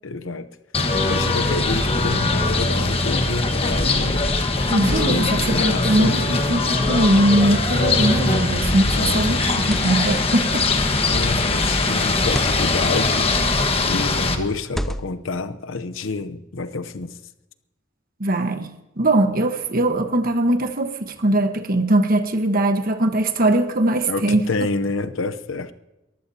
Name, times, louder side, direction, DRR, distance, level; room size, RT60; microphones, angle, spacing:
voice 1, 0.0-0.5 0.8-4.3 4.8-6.3 8.9-9.5 11.1-13.3 13.9-17.2 24.1-25.7, left 3 dB, 90° left, 0.8 m, -28 dB
sound 1, 0.7-14.4, left 3 dB, 30° left, 1.3 m, -21 dB
voice 2, 4.7-10.7 18.2-18.7 19.0-24.4, right 1 dB, 50° right, 1.3 m, -20 dB
sound 2, 9.5-10.2 11.0-11.3 12.2-12.6 13.5-13.9 14.7-15.3, equal, ahead, 0.6 m, -31 dB
23.0 x 15.0 x 2.8 m
head